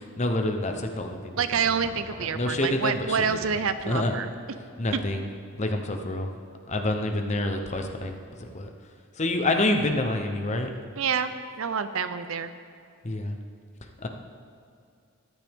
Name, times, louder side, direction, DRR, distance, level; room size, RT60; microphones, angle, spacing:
voice 1, 0.2-1.9 2.3-3.5 3.9-4.1 4.8-5.3 5.5-6.3 6.7-8.7 9.2-10.7 13.0-13.4 14.0-14.1, left 1 dB, 30° left, 5 dB, 0.8 m, -28 dB
voice 2, 1.4-4.3 11.0-12.5, right 6 dB, 65° right, 11 dB, 0.6 m, -27 dB
14.0 x 11.0 x 3.6 m, 2.4 s
head